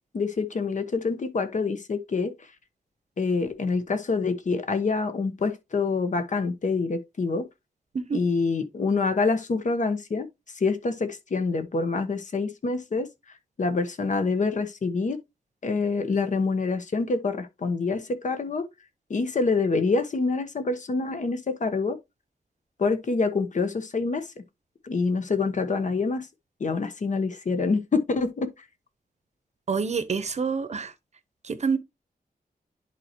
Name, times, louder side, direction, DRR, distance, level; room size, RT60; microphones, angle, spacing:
voice 1, 0.1-2.3 3.2-7.4 8.1-10.3 10.5-13.1 13.6-15.2 15.6-18.7 19.1-22.0 22.8-24.3 24.8-26.3 26.6-28.5, left 4 dB, 50° left, 1.1 m, -26 dB
voice 2, 29.7-30.9 31.4-31.8, right 5 dB, 45° right, 0.9 m, -27 dB
11.0 x 4.4 x 2.9 m
wide cardioid pair, 165°, 16 cm